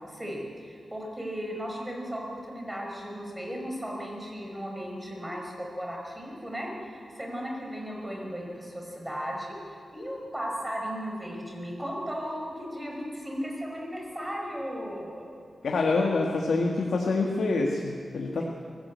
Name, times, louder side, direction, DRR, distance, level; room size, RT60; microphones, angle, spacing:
voice 1, 0.0-15.3, equal, 10° right, -1 dB, 5.2 m, -36 dB
voice 2, 15.6-18.4, left 3 dB, 80° left, 1 dB, 1.8 m, -26 dB
23.5 x 15.0 x 8.3 m, 2.3 s
wide cardioid pair, 105°, 0 cm